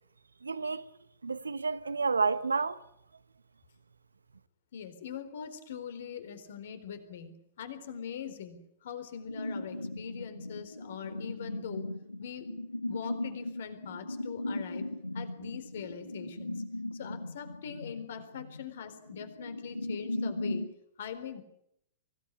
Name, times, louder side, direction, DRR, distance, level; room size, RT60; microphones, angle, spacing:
voice 1, 0.4-0.9 1.2-2.8, right 4 dB, 80° right, 1.1 m, -30 dB
voice 2, 4.7-7.3 7.6-11.9 12.2-14.9 15.1-16.6 16.9-20.6 21.0-21.4, left 8 dB, 60° left, 4.0 m, -42 dB
sound 1, 9.3-20.7, left 2 dB, 90° left, 1.0 m, -38 dB
24.0 x 17.5 x 9.8 m
figure-of-eight pair, 105°, 0 cm